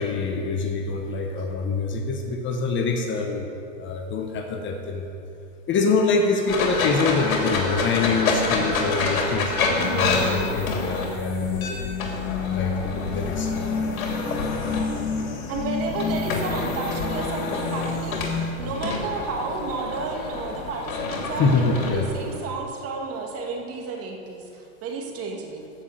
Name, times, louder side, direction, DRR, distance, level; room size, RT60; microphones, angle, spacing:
voice 1, 0.0-5.1 5.7-13.5 21.4-22.1, left 4 dB, 30° left, 4 dB, 1.1 m, -25 dB
sound 1, 6.5-22.4, left 3 dB, 90° left, 2.7 m, -28 dB
voice 2, 9.7-10.6 15.5-25.7, right 4 dB, 35° right, 2 dB, 1.9 m, -32 dB
sound 2, 9.8-18.5, left 6 dB, 70° left, 2.0 m, -30 dB
14.5 x 6.3 x 7.7 m, 2.6 s
supercardioid pair, 135°, 41 cm